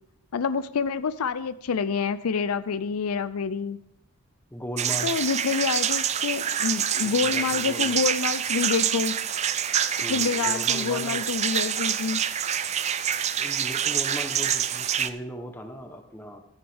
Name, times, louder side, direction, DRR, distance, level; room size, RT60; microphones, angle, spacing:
voice 1, 0.3-3.8 5.0-9.2 10.1-12.2, left 5 dB, 85° left, 15 dB, 0.5 m, -27 dB
voice 2, 4.5-5.2 7.0-8.0 10.0-11.2 13.4-16.4, equal, 10° left, 5 dB, 1.0 m, -37 dB
sound 1, 4.8-15.1, right 9 dB, 30° right, 0.3 m, -26 dB
14.0 x 10.0 x 3.6 m, 0.74 s
head